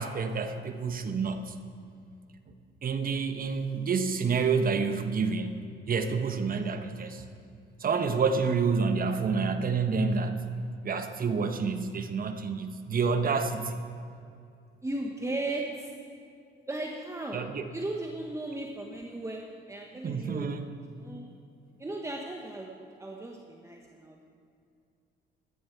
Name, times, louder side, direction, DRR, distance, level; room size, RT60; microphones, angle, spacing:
voice 1, 0.0-1.6 2.8-7.2 7.8-10.5 10.8-13.8 17.3-17.7 20.0-20.7, right 5 dB, 45° right, 8 dB, 1.0 m, -28 dB
voice 2, 14.8-15.9 16.7-20.5 21.0-21.3 21.8-24.2, right 2 dB, 15° right, 1 dB, 1.1 m, -36 dB
13.5 x 13.0 x 4.6 m, 2.4 s
cardioid pair, 90°, 20 cm